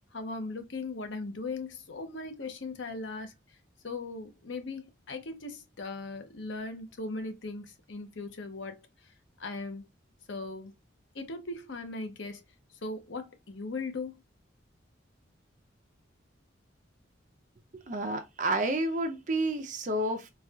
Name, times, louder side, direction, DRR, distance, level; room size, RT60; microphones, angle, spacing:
voice 1, 0.1-3.3 3.8-9.1 9.4-9.9 10.3-10.7 11.1-12.4 12.8-14.1, left 3 dB, 75° left, 0.8 m, -38 dB
voice 2, 17.7-20.3, right 1 dB, 40° right, 0.5 m, -30 dB
4.1 x 2.3 x 2.3 m
head